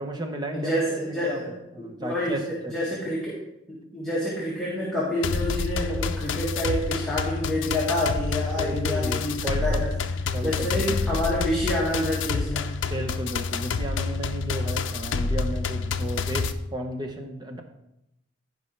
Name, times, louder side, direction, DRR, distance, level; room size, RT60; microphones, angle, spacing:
voice 1, 0.0-0.7 1.1-1.4 1.7-2.7 8.6-9.9 10.3-10.9 12.9-17.6, right 1 dB, 25° right, 3 dB, 0.8 m, -33 dB
voice 2, 0.5-1.6 2.0-3.4 3.7-9.9 10.4-12.7, left 1 dB, 5° left, -7 dB, 1.9 m, -28 dB
sound 1, 5.2-16.5, left 4 dB, 75° left, 0.5 m, -28 dB
15.5 x 5.4 x 3.3 m, 0.85 s
head